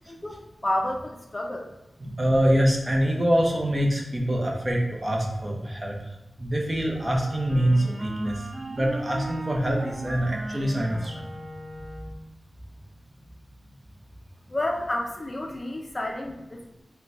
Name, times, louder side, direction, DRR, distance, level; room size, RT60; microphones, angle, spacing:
voice 1, 0.1-1.7 14.5-16.6, left 1 dB, 30° left, 0 dB, 0.5 m, -30 dB
voice 2, 2.0-11.3, equal, 30° right, -1 dB, 0.7 m, -25 dB
Wind instrument woodwind instrument, 6.9-12.3, right 1 dB, 80° right, 0.5 m, -38 dB
3.8 x 2.2 x 4.3 m, 0.88 s
wide cardioid pair, 95°, 0 cm